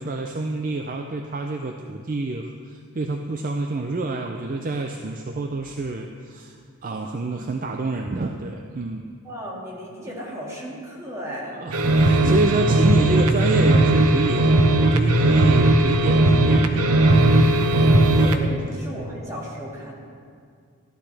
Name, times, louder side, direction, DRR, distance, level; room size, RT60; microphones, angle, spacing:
voice 1, 0.0-6.6 6.8-9.1 11.5-17.7 18.1-18.2, right 2 dB, 35° right, 4 dB, 0.4 m, -28 dB
voice 2, 9.2-11.6 12.2-12.3 17.9-19.9, equal, 15° right, -5 dB, 1.9 m, -35 dB
sound 1, 11.7-18.4, right 2 dB, 90° right, 0.8 m, -17 dB
14.0 x 11.5 x 3.3 m, 2.1 s
head